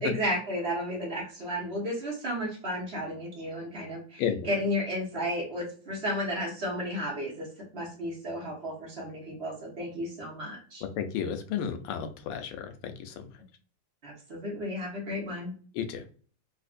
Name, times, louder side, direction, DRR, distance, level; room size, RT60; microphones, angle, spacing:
voice 1, 0.0-7.5 7.7-10.8 14.0-15.5, equal, 40° right, -3 dB, 1.1 m, -33 dB
voice 2, 4.2-4.5 11.0-13.2 15.7-16.0, left 8 dB, 85° left, 7 dB, 1.5 m, -33 dB
4.2 x 2.5 x 2.5 m, 0.41 s
omnidirectional pair, 2.4 m